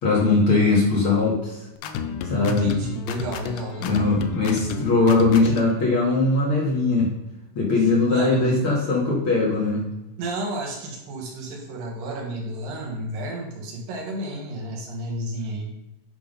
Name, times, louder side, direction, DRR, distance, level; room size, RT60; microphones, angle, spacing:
voice 1, 0.0-1.6 2.2-2.7 3.8-7.1 7.6-9.8, left 3 dB, 45° left, -4 dB, 2.4 m, -20 dB
sound 1, 1.8-5.8, left 6 dB, 85° left, 2.3 m, -32 dB
voice 2, 2.4-4.1 7.8-8.7 10.2-15.7, right 2 dB, 85° right, -1 dB, 3.3 m, -32 dB
9.8 x 3.8 x 5.2 m, 0.94 s
omnidirectional pair, 3.8 m